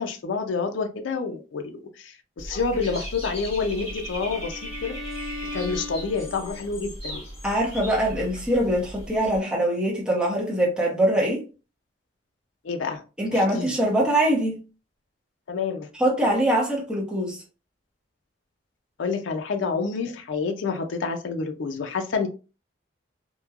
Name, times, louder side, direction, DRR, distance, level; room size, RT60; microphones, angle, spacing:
voice 1, 0.0-5.0 5.5-7.2 12.6-13.0 13.3-13.7 15.5-15.9 19.0-22.3, left 4 dB, 70° left, 0.4 m, -28 dB
Dog / Bird, 2.4-9.4, equal, 30° left, 1.3 m, -37 dB
Bowed string instrument, 3.6-6.7, left 2 dB, 55° right, 1.1 m, -39 dB
voice 2, 7.4-11.4 13.2-14.6 16.0-17.4, right 1 dB, 5° right, 0.7 m, -23 dB
3.0 x 2.2 x 2.3 m
head